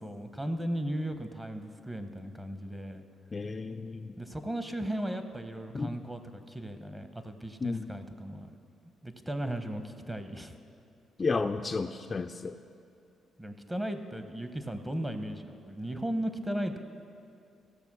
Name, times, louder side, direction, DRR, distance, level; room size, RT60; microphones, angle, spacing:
voice 1, 0.0-3.0 4.2-8.6 9.0-10.5 13.4-16.8, right 1 dB, 15° right, 8 dB, 0.9 m, -36 dB
voice 2, 3.3-4.2 5.7-5.9 7.6-7.9 11.2-12.6, left 4 dB, 30° left, 7 dB, 0.4 m, -32 dB
15.5 x 6.8 x 6.1 m, 2.4 s
cardioid pair, 90°, 0 cm